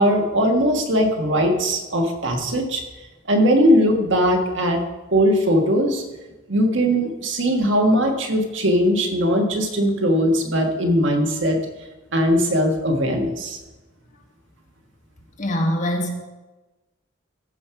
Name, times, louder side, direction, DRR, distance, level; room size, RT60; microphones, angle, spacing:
voice 1, 0.0-2.8 3.3-4.8 5.1-6.0 6.5-11.6 12.1-13.6, equal, 65° right, 3 dB, 1.6 m, -19 dB
voice 2, 15.4-16.1, equal, 40° left, 2 dB, 1.5 m, -23 dB
14.5 x 5.4 x 5.9 m, 1.1 s
head